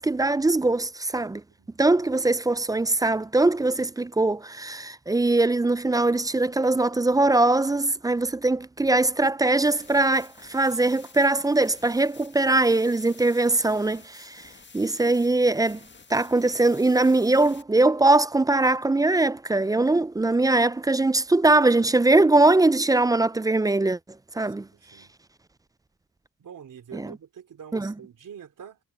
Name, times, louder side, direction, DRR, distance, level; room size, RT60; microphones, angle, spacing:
voice 1, 0.0-1.4 1.8-14.4 14.7-15.8 16.1-24.0 24.4-24.6 26.9-27.2 27.7-27.9, right 2 dB, 10° right, 0.3 m, -21 dB
sound 1, 9.6-17.6, left 4 dB, 35° left, 1.7 m, -50 dB
voice 2, 24.4-25.1 26.4-28.8, right 8 dB, 75° right, 3.3 m, -45 dB
cardioid pair, 65°, 33 cm